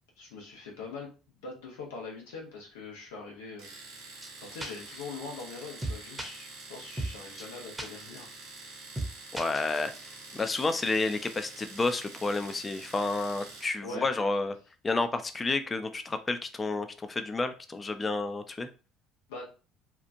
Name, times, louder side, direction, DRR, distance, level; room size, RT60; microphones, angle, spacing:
voice 1, 0.2-3.7 4.4-8.3 13.8-14.1 19.3-19.5, left 3 dB, 80° left, 0 dB, 0.9 m, -42 dB
Domestic sounds home sounds, 3.6-13.8, right 3 dB, 80° right, 1.0 m, -47 dB
sound 1, 4.2-4.3 4.6-4.7 5.0-5.1 5.4-5.5 5.8-6.3 6.6-6.7 7.0-7.1 7.4-7.5 7.8-7.9 8.2-8.3 8.6-8.7 8.9-9.1 9.3-10.0, right 2 dB, 15° right, 0.8 m, -34 dB
voice 2, 9.3-9.9 10.3-14.6 14.8-18.7, left 3 dB, 25° left, 9 dB, 0.5 m, -30 dB
2.9 x 2.4 x 2.5 m, 0.34 s
hypercardioid pair, 65°, 0 cm